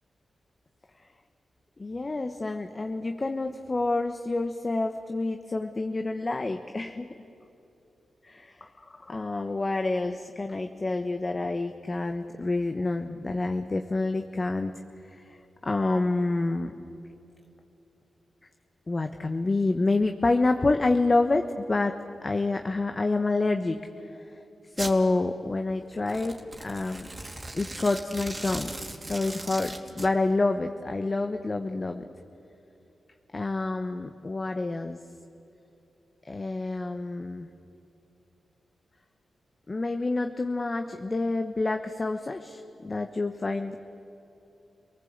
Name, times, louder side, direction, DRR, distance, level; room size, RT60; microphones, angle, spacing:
voice 1, 1.8-7.1 8.2-14.7 15.1-16.9 18.9-23.8 24.1-24.4 24.7-27.1 27.5-28.7 29.1-32.0 33.3-35.0 36.2-37.5 39.7-43.8, left 2 dB, 35° left, 6 dB, 1.2 m, -28 dB
Domestic sounds home sounds, 24.8-25.0 26.0-30.1, right 2 dB, 30° right, 2.8 m, -38 dB
29.5 x 19.5 x 8.1 m, 2.9 s
cardioid pair, 60°, 0 cm